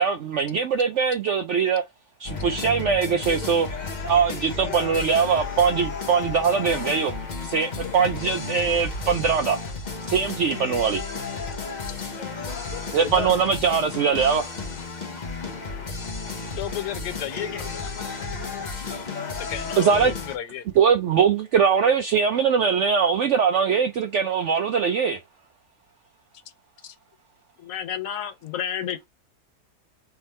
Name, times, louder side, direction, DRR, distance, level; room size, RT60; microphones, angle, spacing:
voice 1, 0.0-1.8 2.2-3.7 4.0-7.1 7.4-9.6 10.1-11.0 12.9-14.5 19.8-20.1 20.8-25.2, right 6 dB, 75° right, 0.6 m, -22 dB
sound 1, 2.2-20.4, left 4 dB, 35° left, 0.8 m, -33 dB
voice 2, 12.7-13.3 16.5-17.9 19.4-20.6 26.8-27.0, left 10 dB, 80° left, 1.2 m, -34 dB
voice 3, 27.6-29.1, left 9 dB, 65° left, 0.9 m, -30 dB
3.5 x 3.4 x 4.1 m
omnidirectional pair, 1.7 m